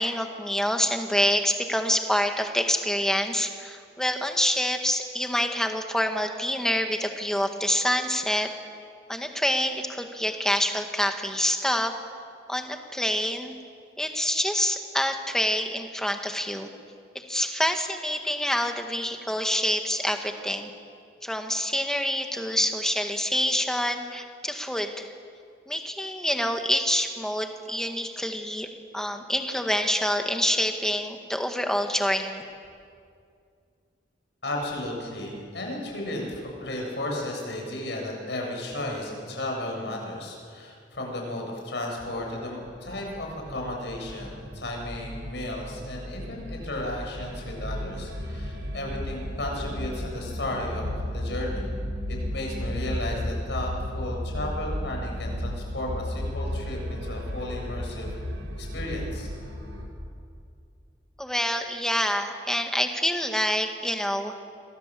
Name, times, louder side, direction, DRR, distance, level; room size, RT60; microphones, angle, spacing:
voice 1, 0.0-8.5 9.1-11.9 12.5-13.5 14.0-16.7 17.1-20.7 21.2-25.1 25.7-28.7 28.9-32.4 61.2-64.5, equal, 5° left, 5 dB, 1.7 m, -26 dB
voice 2, 34.4-51.7 52.1-58.1 58.6-59.3, left 1 dB, 65° left, 0 dB, 7.6 m, -34 dB
sound 1, 42.6-59.9, left 1 dB, 85° right, 4.9 m, -34 dB
28.0 x 23.0 x 7.7 m, 2.3 s
head